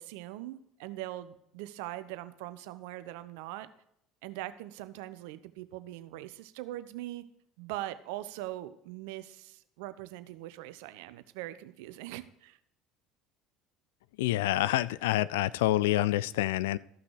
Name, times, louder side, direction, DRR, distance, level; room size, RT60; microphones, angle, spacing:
voice 1, 0.0-3.7 4.2-7.2 7.6-12.6, right 15 dB, 70° right, 13 dB, 0.7 m, -41 dB
voice 2, 14.2-16.8, left 15 dB, 75° left, 19 dB, 0.4 m, -27 dB
14.0 x 6.0 x 4.8 m, 0.75 s
hypercardioid pair, 65°, 0 cm